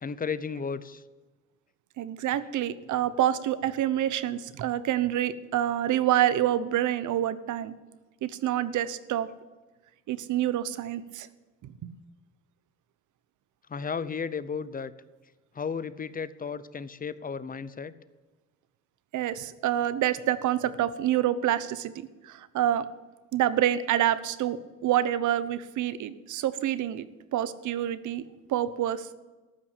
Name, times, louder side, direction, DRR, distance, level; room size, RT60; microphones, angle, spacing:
voice 1, 0.0-1.0 13.7-14.9 15.5-17.9, left 6 dB, 30° left, 16 dB, 0.7 m, -34 dB
voice 2, 2.0-7.7 8.2-9.3 10.1-11.3 11.6-11.9 19.1-21.9 22.2-22.9 23.3-29.1, right 12 dB, 75° right, 15 dB, 0.9 m, -27 dB
14.0 x 6.0 x 9.8 m, 1.2 s
cardioid pair, 90°, 30 cm